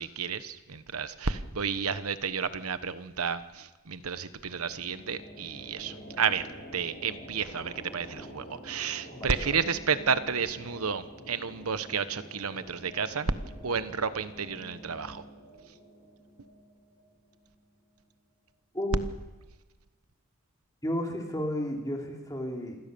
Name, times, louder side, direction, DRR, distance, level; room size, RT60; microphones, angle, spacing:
voice 1, 0.0-6.4 6.7-13.3 13.6-15.2, right 6 dB, 80° right, 12 dB, 1.1 m, -31 dB
sound 1, 4.5-17.9, equal, 40° left, 6.8 m, -48 dB
voice 2, 9.1-9.6 18.7-19.0 20.8-22.8, equal, 15° left, 0 dB, 3.2 m, -33 dB
27.0 x 16.0 x 7.0 m, 1.2 s
head